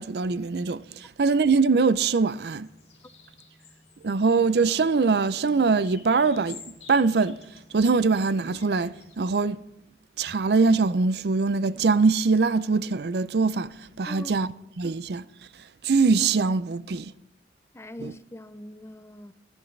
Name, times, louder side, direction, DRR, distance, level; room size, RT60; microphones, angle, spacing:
voice 1, 0.0-2.7 4.0-6.6 6.9-7.4 7.7-9.6 10.2-15.3 15.8-17.1 18.0-18.1, right 4 dB, 65° right, 0.5 m, -23 dB
sound 1, 2.6-9.2, left 4 dB, 40° left, 2.7 m, -51 dB
voice 2, 14.1-14.4 17.7-19.3, left 1 dB, 15° left, 0.5 m, -41 dB
21.5 x 11.0 x 3.3 m
head